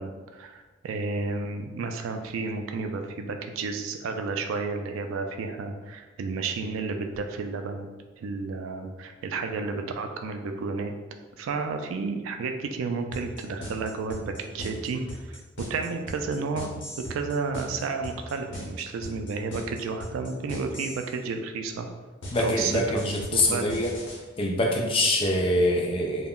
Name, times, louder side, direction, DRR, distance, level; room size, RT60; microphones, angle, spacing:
voice 1, 0.0-7.9 8.2-10.9 11.4-15.4 15.7-16.7 17.1-21.9 22.4-23.0 23.3-23.8, right 4 dB, 85° right, 6 dB, 0.3 m, -31 dB
sound 1, 13.1-21.1 22.2-24.2, equal, 65° left, 0.7 m, -38 dB
voice 2, 22.3-23.9 24.4-26.3, left 1 dB, 25° left, 0 dB, 0.3 m, -24 dB
2.2 x 2.0 x 3.6 m, 1.3 s
head